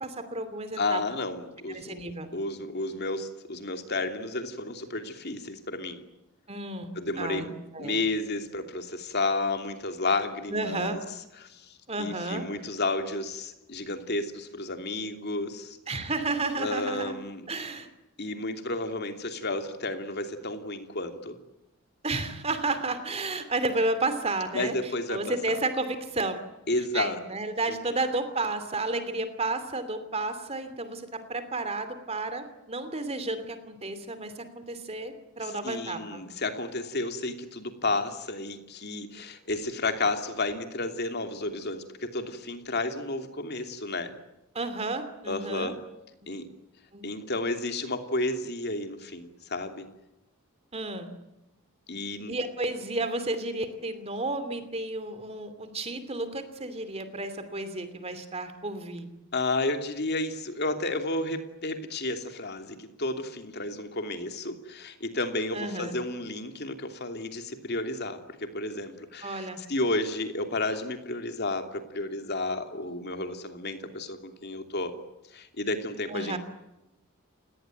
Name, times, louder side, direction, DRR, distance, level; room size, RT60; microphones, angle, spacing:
voice 1, 0.0-1.0 1.7-2.3 6.5-6.9 7.2-8.0 10.5-11.0 11.9-12.5 15.9-17.2 17.5-17.9 22.0-26.4 26.9-36.2 44.5-45.7 46.2-46.3 46.9-47.1 50.7-51.1 52.3-59.1 65.5-66.0 69.2-69.6 76.1-76.4, right 2 dB, 30° right, 11 dB, 2.9 m, -32 dB
voice 2, 0.8-2.0 2.3-6.0 6.9-11.0 11.4-15.8 16.6-17.5 18.2-21.4 24.5-25.4 26.7-27.2 35.6-44.1 45.3-45.7 46.3-46.5 47.0-49.9 51.9-52.4 59.3-74.9 75.3-76.4, left 2 dB, 45° left, 6 dB, 2.9 m, -32 dB
29.5 x 18.5 x 9.4 m, 0.95 s
head